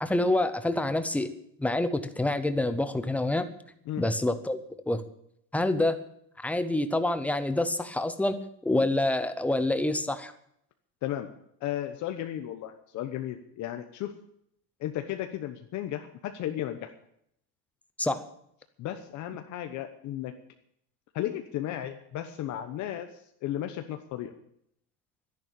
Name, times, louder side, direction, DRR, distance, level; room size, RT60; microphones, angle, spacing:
voice 1, 0.0-1.3 1.6-3.5 4.0-4.6 4.9-5.0 5.5-6.0 6.4-10.3 18.0-18.3, left 2 dB, 5° left, 10 dB, 0.6 m, -27 dB
voice 2, 11.6-14.1 14.8-16.9 18.8-20.3 21.1-24.3, left 12 dB, 40° left, 6 dB, 1.1 m, -34 dB
12.5 x 11.0 x 8.6 m, 0.71 s
cardioid pair, 160°, 45 cm